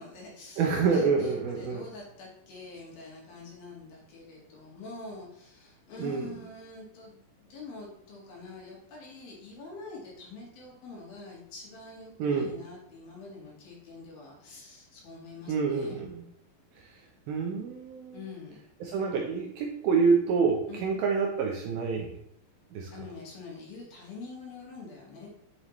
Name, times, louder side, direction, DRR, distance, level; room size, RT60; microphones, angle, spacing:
voice 1, 0.0-16.1 18.1-18.6 20.7-20.9 22.9-25.3, left 3 dB, 60° left, -3 dB, 3.6 m, -45 dB
voice 2, 0.6-1.8 6.0-6.3 12.2-12.5 15.5-16.2 16.8-17.0 17.3-18.2 18.8-22.1 22.7-22.9, right 5 dB, 75° right, 0 dB, 2.3 m, -27 dB
8.9 x 6.9 x 3.1 m, 0.74 s
omnidirectional pair, 5.0 m